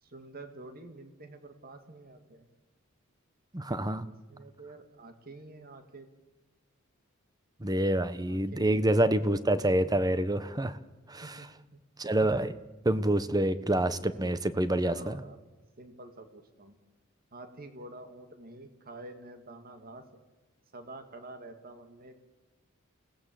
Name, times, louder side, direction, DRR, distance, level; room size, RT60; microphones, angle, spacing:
voice 1, 0.0-2.5 4.0-6.1 8.3-9.3 11.2-11.8 14.8-15.4 15.8-16.8 17.3-20.2 20.7-22.1, right 2 dB, 45° right, 8 dB, 2.0 m, -48 dB
voice 2, 3.5-4.1 7.6-10.8 11.1-11.4 12.0-12.5 12.8-15.2, right 1 dB, 20° right, 13 dB, 1.0 m, -27 dB
28.0 x 18.0 x 7.6 m, 1.1 s
head